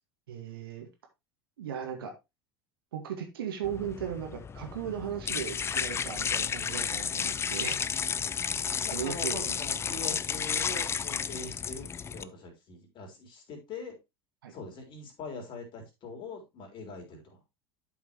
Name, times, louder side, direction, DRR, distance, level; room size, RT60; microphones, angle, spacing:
voice 1, 0.3-0.9 1.6-2.1 2.9-7.8 8.9-9.4 11.4-11.5 14.4-14.5, right 9 dB, 65° right, 4 dB, 2.0 m, -37 dB
sound 1, 3.6-12.2, left 7 dB, 20° left, 0.4 m, -32 dB
voice 2, 8.8-11.9 12.1-14.0 14.5-17.4, left 4 dB, 40° left, 2 dB, 3.7 m, -43 dB
11.5 x 5.8 x 3.0 m, 0.22 s
figure-of-eight pair, 75°, 13 cm